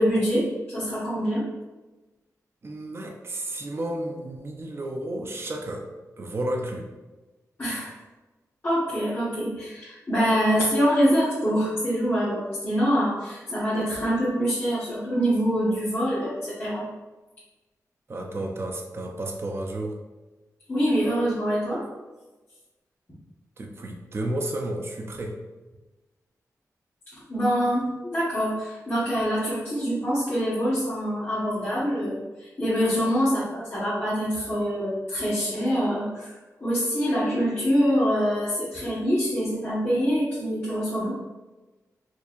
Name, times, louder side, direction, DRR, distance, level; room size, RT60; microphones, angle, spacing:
voice 1, 0.0-1.5 7.6-7.9 8.6-16.8 20.7-21.9 27.3-36.3 36.6-41.1, equal, 35° left, -11 dB, 1.3 m, -25 dB
voice 2, 2.6-5.8 6.2-6.9 18.1-20.0 23.6-25.4, right 1 dB, 40° right, 1 dB, 0.5 m, -32 dB
4.5 x 2.7 x 2.5 m, 1.2 s
wide cardioid pair, 90°, 6 cm